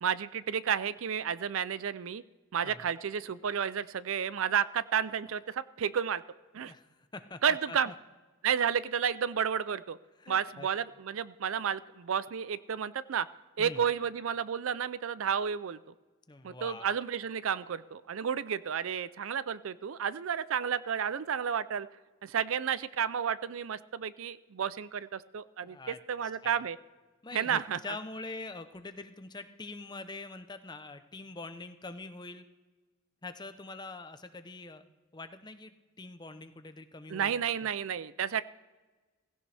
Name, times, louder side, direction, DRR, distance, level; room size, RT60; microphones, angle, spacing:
voice 1, 0.0-2.2 2.5-6.2 6.5-6.7 7.4-7.9 8.4-10.0 10.3-13.3 13.6-15.8 16.4-21.9 22.2-26.8 27.3-27.8 37.1-38.4, right 7 dB, 75° right, 17 dB, 0.5 m, -31 dB
voice 2, 6.6-7.4 7.7-7.9 10.2-10.7 13.6-13.8 16.3-16.9 25.6-26.0 26.4-26.6 27.2-32.4 33.2-34.8 35.1-37.3 37.6-37.7, left 3 dB, 20° left, 9 dB, 0.7 m, -44 dB
17.0 x 16.0 x 3.4 m, 1.3 s
head